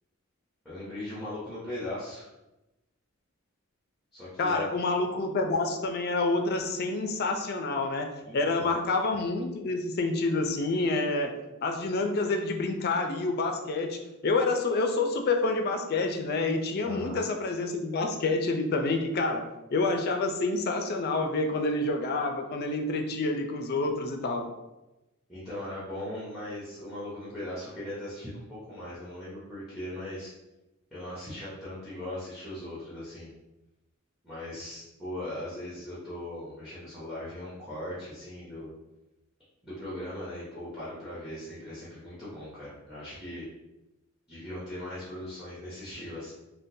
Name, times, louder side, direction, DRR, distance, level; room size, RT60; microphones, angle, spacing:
voice 1, 0.6-2.3 4.1-4.6 8.2-8.8 16.8-17.2 25.3-30.3 30.9-33.3 34.2-38.7 39.6-43.5 44.3-46.3, left 1 dB, 5° right, -10 dB, 0.8 m, -39 dB
voice 2, 4.4-11.3 11.6-24.5, left 3 dB, 50° left, 4 dB, 0.4 m, -28 dB
3.6 x 2.1 x 2.6 m, 0.99 s
head